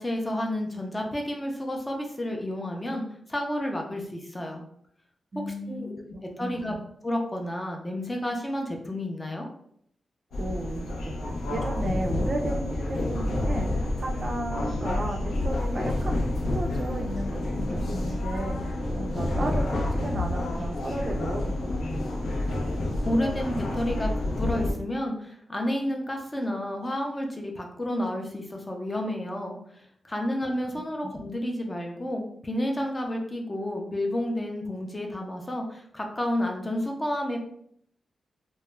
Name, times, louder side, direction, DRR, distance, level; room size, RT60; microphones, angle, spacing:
voice 1, 0.0-3.0 3.3-4.6 5.5-6.0 6.4-6.7 7.0-9.5 23.1-37.4, left 1 dB, 20° left, 1 dB, 0.4 m, -30 dB
voice 2, 5.3-5.9 6.4-6.9 10.4-11.2 11.5-22.1 30.3-30.4, right 1 dB, 40° right, 2 dB, 0.3 m, -34 dB
sound 1, 10.3-24.7, left 1 dB, 85° left, 0.5 m, -29 dB
2.3 x 2.0 x 3.1 m, 0.67 s
wide cardioid pair, 120°, 0 cm